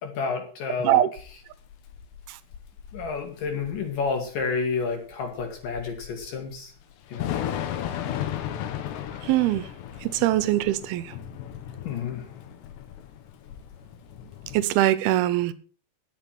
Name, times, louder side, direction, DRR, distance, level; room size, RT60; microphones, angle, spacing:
voice 1, 0.0-1.0 2.9-6.7 7.1-7.4 11.8-12.3, left 5 dB, 60° left, 3.2 m, -30 dB
Thunder / Rain, 1.2-14.6, left 10 dB, 85° left, 3.4 m, -36 dB
voice 2, 9.2-9.7 10.0-11.1 14.5-15.5, right 14 dB, 75° right, 2.6 m, -22 dB
11.5 x 8.8 x 6.1 m
omnidirectional pair, 4.8 m